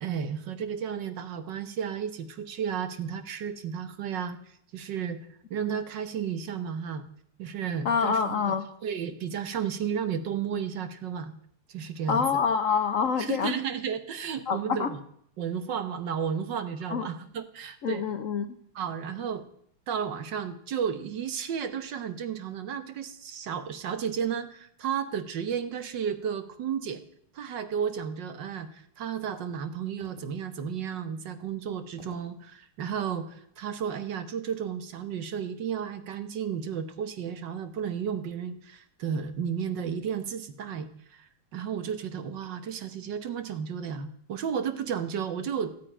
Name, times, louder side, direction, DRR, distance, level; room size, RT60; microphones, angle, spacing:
voice 1, 0.0-5.2 5.5-7.0 7.4-8.5 8.8-11.3 11.7-12.2 13.2-15.0 15.4-18.0 18.7-19.4 19.9-27.0 27.3-45.9, right 7 dB, 60° right, 11 dB, 1.5 m, -33 dB
voice 2, 7.8-8.7 12.1-13.6 14.5-14.9 16.9-17.1 17.8-18.5, left 6 dB, 75° left, 10 dB, 0.7 m, -26 dB
sound 1, 30.0-30.6 31.1-31.2 32.0-32.5 33.3-33.7, equal, 15° right, 1.9 m, -52 dB
13.5 x 9.2 x 8.9 m, 0.68 s
omnidirectional pair, 2.4 m